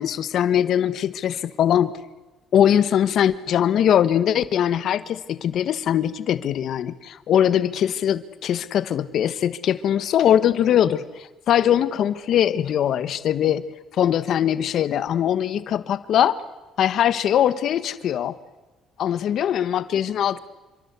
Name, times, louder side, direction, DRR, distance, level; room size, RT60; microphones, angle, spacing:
voice 1, 0.0-1.9 2.5-13.6 14.0-16.4 16.8-18.3 19.0-20.4, left 10 dB, 55° left, 14 dB, 1.3 m, -21 dB
27.5 x 25.5 x 8.3 m, 1.1 s
cardioid pair, 150°, 0 cm